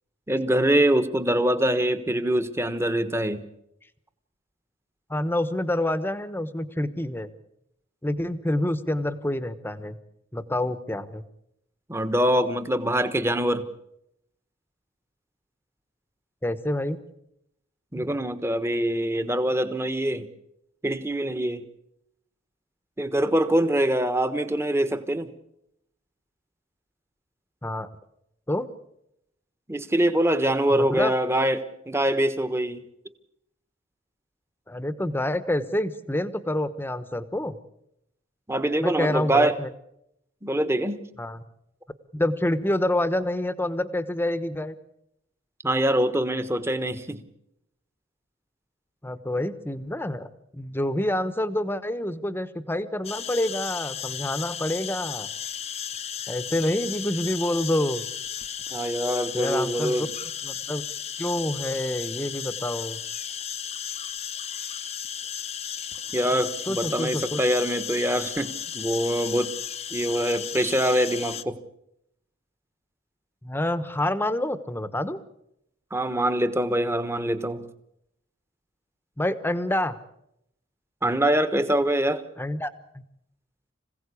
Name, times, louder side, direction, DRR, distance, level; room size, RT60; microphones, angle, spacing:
voice 1, 0.3-3.4 11.9-13.7 17.9-20.3 20.8-21.6 23.0-25.3 29.7-32.8 38.5-39.6 40.4-41.0 45.6-47.2 58.7-60.1 66.1-69.5 69.9-71.6 75.9-77.7 81.0-82.2, right 1 dB, 10° right, 11 dB, 1.2 m, -24 dB
voice 2, 5.1-7.3 8.0-10.0 10.3-11.2 16.4-17.0 27.6-27.9 28.5-28.7 30.7-31.1 34.7-37.6 38.8-39.7 41.2-41.4 42.1-44.7 49.0-55.3 56.3-58.1 59.3-60.1 60.4-60.8 61.2-63.0 66.7-67.4 73.4-75.2 79.2-80.0 82.4-82.7, left 1 dB, 10° left, 13 dB, 1.1 m, -27 dB
sound 1, 53.0-71.4, left 9 dB, 30° left, 0.8 m, -34 dB
26.0 x 16.5 x 8.4 m, 0.80 s
head